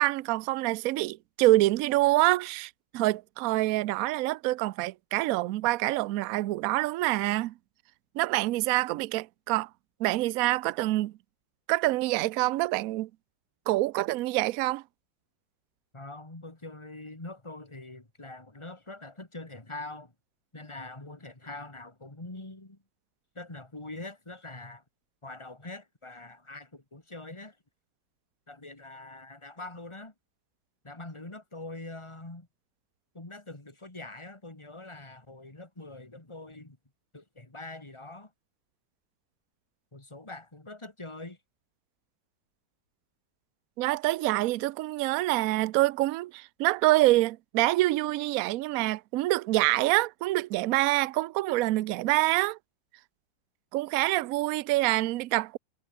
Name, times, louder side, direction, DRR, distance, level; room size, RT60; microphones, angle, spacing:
voice 1, 0.0-7.5 8.1-9.7 10.0-11.1 11.7-13.1 13.7-14.8 43.8-52.6 53.7-55.6, right 18 dB, 75° right, 0.8 m, -26 dB
voice 2, 15.9-20.1 20.5-22.8 23.3-24.8 25.2-27.6 28.5-30.1 30.8-32.5 33.1-36.8 37.1-38.3 39.9-41.4, left 2 dB, 15° left, 2.6 m, -43 dB
omnidirectional pair, 2.0 m